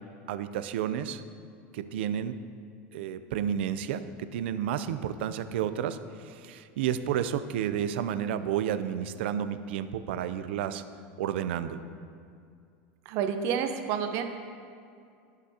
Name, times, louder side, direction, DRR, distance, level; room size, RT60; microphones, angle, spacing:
voice 1, 0.3-1.2 1.7-2.4 2.9-6.0 6.2-10.8 11.2-11.8, right 9 dB, 85° right, 11 dB, 0.5 m, -31 dB
voice 2, 13.1-14.2, right 7 dB, 55° right, 6 dB, 0.8 m, -29 dB
17.0 x 6.1 x 2.8 m, 2.4 s
supercardioid pair, 135°, 6 cm